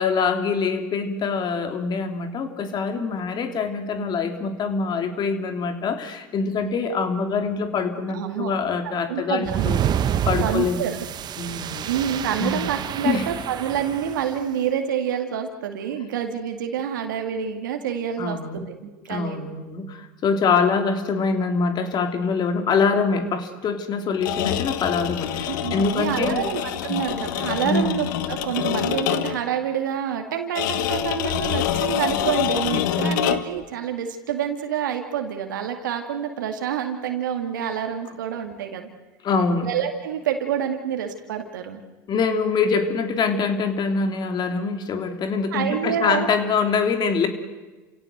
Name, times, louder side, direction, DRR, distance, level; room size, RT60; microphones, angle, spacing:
voice 1, 0.0-9.8 10.3-10.9 11.4-11.9 12.4-12.7 13.0-13.3 18.2-18.7 19.1-26.4 26.9-27.0 27.6-28.0 33.0-33.2 39.2-39.7 42.1-47.3, left 5 dB, 45° left, 7 dB, 3.2 m, -24 dB
voice 2, 8.1-8.5 9.1-9.6 10.4-11.0 11.9-18.4 18.7-19.4 25.5-38.9 39.6-41.8 45.5-46.3, right 9 dB, 90° right, 5 dB, 2.2 m, -27 dB
sound 1, 9.4-14.3, right 10 dB, 45° right, 1.2 m, -28 dB
sound 2, 24.1-29.5 30.6-33.6, left 11 dB, 80° left, 1.5 m, -26 dB
29.0 x 17.0 x 8.0 m, 1.2 s
hypercardioid pair, 85°, 10 cm